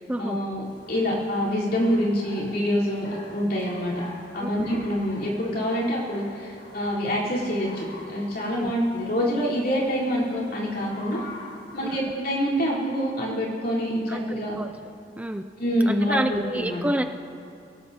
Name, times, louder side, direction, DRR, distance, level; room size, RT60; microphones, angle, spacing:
voice 1, 0.2-0.6 0.9-3.9 4.3-11.2 11.7-14.6 15.6-16.8, equal, 60° left, -7 dB, 4.1 m, -26 dB
sound 1, 0.6-12.0, left 2 dB, 80° left, 4.8 m, -46 dB
voice 2, 14.1-14.7 15.2-15.4 15.9-17.0, right 1 dB, 10° right, 6 dB, 0.4 m, -29 dB
24.0 x 17.5 x 2.9 m, 2.6 s
head